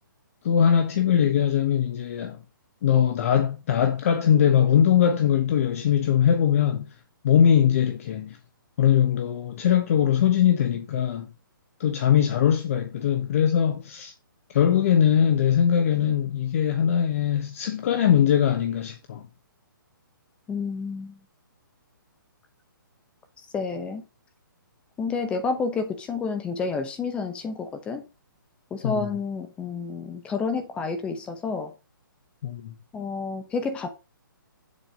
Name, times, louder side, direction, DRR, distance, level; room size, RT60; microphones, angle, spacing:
voice 1, 0.4-2.4 2.8-6.9 7.2-8.4 8.8-11.3 11.8-14.1 14.5-19.2 28.8-29.1 32.4-32.7, left 9 dB, 40° left, 1.1 m, -21 dB
voice 2, 20.5-21.2 23.4-24.0 25.0-28.0 28.7-31.7 32.9-33.9, left 4 dB, 10° left, 0.8 m, -30 dB
7.5 x 5.7 x 5.3 m
hypercardioid pair, 160°, 11 cm